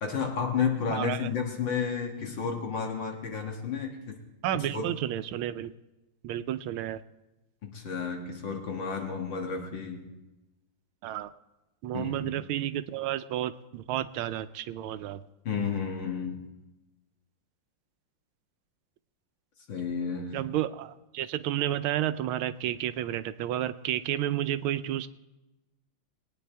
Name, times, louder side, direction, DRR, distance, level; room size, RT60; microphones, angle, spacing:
voice 1, 0.0-4.0 4.5-4.9 7.6-10.1 11.9-12.4 15.4-16.5 19.7-20.4, left 6 dB, 65° left, 2 dB, 2.2 m, -32 dB
voice 2, 0.9-1.3 4.4-5.7 6.2-7.0 11.0-11.3 11.8-15.2 20.3-25.1, right 12 dB, 90° right, 13 dB, 1.4 m, -31 dB
21.0 x 9.4 x 3.4 m, 1.0 s
omnidirectional pair, 2.2 m